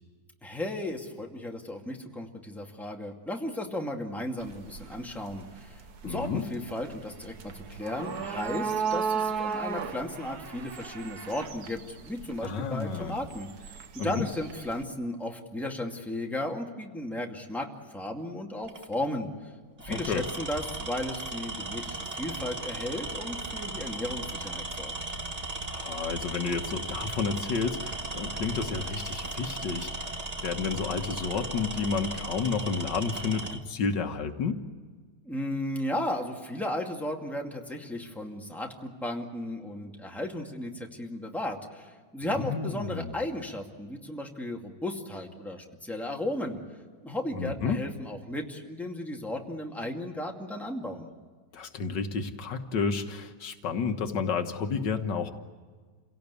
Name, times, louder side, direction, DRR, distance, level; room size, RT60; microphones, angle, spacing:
voice 1, 0.4-19.3 19.8-24.9 35.2-46.6 47.0-51.1, left 1 dB, ahead, 1 dB, 2.2 m, -35 dB
sound 1, 4.4-14.8, right 6 dB, 65° right, 1.7 m, -36 dB
voice 2, 6.0-6.4 12.4-13.2 14.0-14.3 19.9-20.2 25.6-30.1 30.4-34.6 42.4-43.1 47.3-47.8 51.5-55.3, left 5 dB, 80° left, 7 dB, 1.9 m, -31 dB
Tools, 18.6-18.9 19.8-33.6, right 2 dB, 25° right, 1.2 m, -36 dB
28.5 x 17.5 x 8.3 m, 1.5 s
omnidirectional pair, 1.9 m